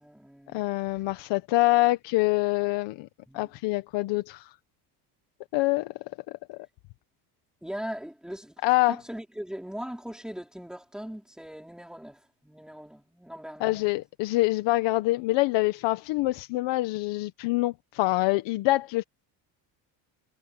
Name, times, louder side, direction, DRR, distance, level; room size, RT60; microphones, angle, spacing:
voice 1, 0.0-0.6 3.3-3.5 7.6-8.5 8.9-13.8, equal, ahead, 4.2 m, -40 dB
voice 2, 0.5-3.1 3.3-4.5 5.5-5.9 6.5-6.6 8.6-9.0 13.6-19.0, left 20 dB, 80° left, 1.3 m, -25 dB
cardioid pair, 115°, 43 cm